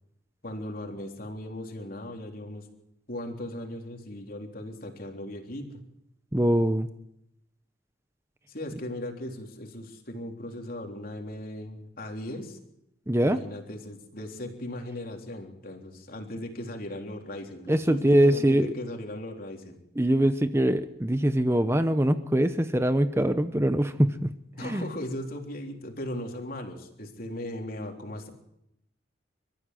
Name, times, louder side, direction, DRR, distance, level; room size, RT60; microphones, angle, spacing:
voice 1, 0.4-2.7 3.1-5.8 8.5-12.6 13.2-19.8 24.5-28.3, left 1 dB, 50° left, 3 dB, 3.7 m, -38 dB
voice 2, 6.3-6.9 13.1-13.4 17.7-18.7 20.0-24.3 24.6-24.8, right 1 dB, 15° right, 10 dB, 0.8 m, -23 dB
30.0 x 14.5 x 7.7 m, 0.80 s
head